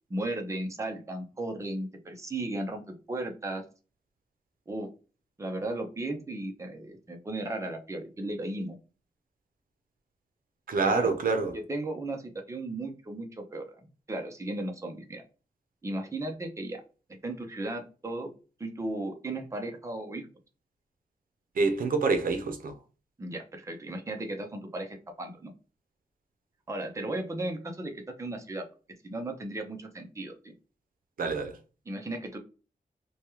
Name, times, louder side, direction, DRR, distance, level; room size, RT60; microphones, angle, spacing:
voice 1, 0.1-3.6 4.7-4.9 5.4-8.8 10.8-11.1 11.5-13.7 14.1-15.2 15.8-16.8 17.2-18.3 18.6-20.3 23.2-25.5 26.7-28.6 29.0-30.5 31.9-32.4, right 2 dB, 20° right, 0.6 m, -35 dB
voice 2, 10.7-11.5 21.6-22.7 31.2-31.6, right 4 dB, 70° right, 0.6 m, -26 dB
3.2 x 2.2 x 2.8 m
wide cardioid pair, 125°, 15 cm